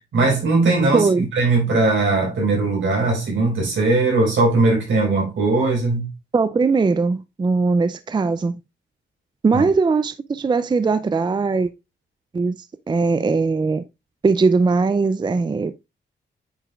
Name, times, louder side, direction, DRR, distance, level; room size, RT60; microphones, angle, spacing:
voice 1, 0.1-6.1 9.5-9.6, right 3 dB, 80° right, 4.4 m, -19 dB
voice 2, 0.9-1.3 6.3-8.6 9.4-11.7 12.3-12.6 12.9-13.8 14.2-15.7, right 4 dB, 25° right, 0.4 m, -19 dB
8.8 x 5.1 x 2.4 m
cardioid pair, 85°, 20 cm